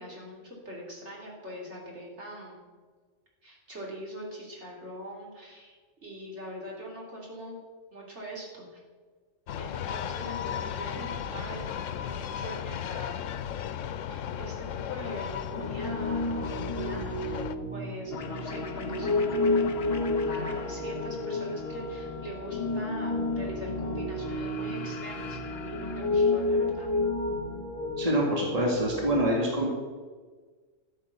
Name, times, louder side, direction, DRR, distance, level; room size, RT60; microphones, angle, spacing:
voice 1, 0.0-2.6 3.4-7.6 7.9-8.8 9.6-13.2 14.1-19.6 20.3-26.9, equal, 65° right, -3 dB, 3.3 m, -42 dB
sound 1, 9.5-17.6, left 9 dB, 90° left, 1.0 m, -35 dB
Piano, 15.5-29.2, left 2 dB, 40° left, 2.8 m, -31 dB
sound 2, 18.1-27.1, left 5 dB, 55° left, 1.0 m, -40 dB
voice 2, 28.0-29.7, right 1 dB, 30° right, -2 dB, 2.3 m, -26 dB
13.5 x 7.4 x 7.0 m, 1.4 s
omnidirectional pair, 1.3 m